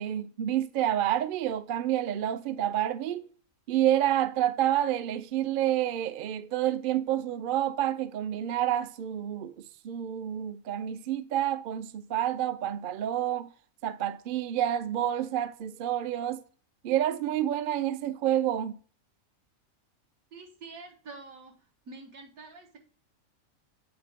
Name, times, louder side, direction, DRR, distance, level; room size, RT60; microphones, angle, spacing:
voice 1, 0.0-3.2 3.7-9.5 9.8-13.5 13.8-16.4 16.8-18.8, right 11 dB, 70° right, 0.5 m, -28 dB
voice 2, 20.3-21.6 21.9-22.8, right 3 dB, 90° right, 1.9 m, -46 dB
7.9 x 4.5 x 3.5 m
omnidirectional pair, 1.4 m